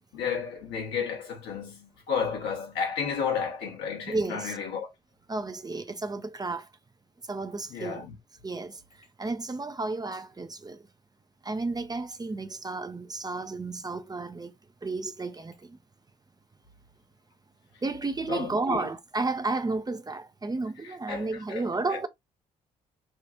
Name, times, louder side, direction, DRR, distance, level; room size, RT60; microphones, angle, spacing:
voice 1, 0.1-4.9 7.7-8.1 18.3-18.9 20.8-22.0, left 6 dB, 70° left, 1.3 m, -32 dB
voice 2, 4.1-4.5 5.3-6.7 7.3-8.0 8.4-8.8 9.2-10.8 11.4-14.5 14.8-15.8 17.8-22.1, right 3 dB, 20° right, 0.6 m, -32 dB
3.4 x 2.4 x 2.9 m
hypercardioid pair, 45°, 19 cm